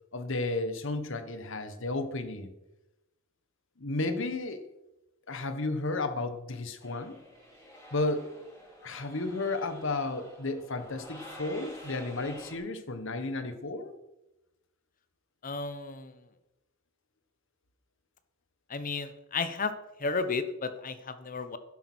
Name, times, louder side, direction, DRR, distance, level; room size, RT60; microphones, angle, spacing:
voice 1, 0.1-2.5 3.8-4.6 5.3-7.1 7.9-8.3 8.8-13.9, left 2 dB, 65° left, 10 dB, 1.4 m, -33 dB
sound 1, 6.8-12.6, left 1 dB, 15° left, 4.7 m, -49 dB
voice 2, 15.4-16.1 18.7-19.7 20.0-21.6, left 4 dB, 40° left, 11 dB, 1.1 m, -33 dB
12.0 x 10.0 x 6.3 m, 0.96 s
head